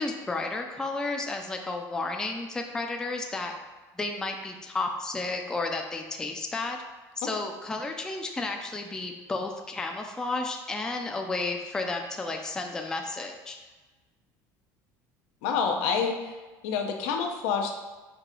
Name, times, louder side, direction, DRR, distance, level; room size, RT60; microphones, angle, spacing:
voice 1, 0.0-3.5 3.9-6.8 7.2-13.6, left 3 dB, 10° left, 3 dB, 0.3 m, -32 dB
voice 2, 15.4-16.4 16.6-17.8, left 6 dB, 80° left, 3 dB, 0.6 m, -27 dB
4.8 x 2.7 x 3.7 m, 1.2 s
cardioid pair, 150°, 8 cm